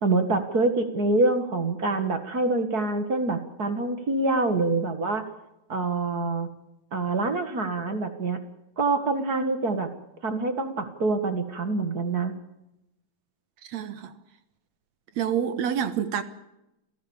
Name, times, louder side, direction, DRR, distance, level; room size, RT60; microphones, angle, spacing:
voice 1, 0.0-5.2 5.7-6.5 6.9-8.4 8.8-9.9 10.2-12.3, right 3 dB, 40° right, 1.5 m, -25 dB
voice 2, 13.7-14.1 15.2-16.2, right 8 dB, 65° right, 2.0 m, -27 dB
28.0 x 16.0 x 7.2 m
omnidirectional pair, 4.1 m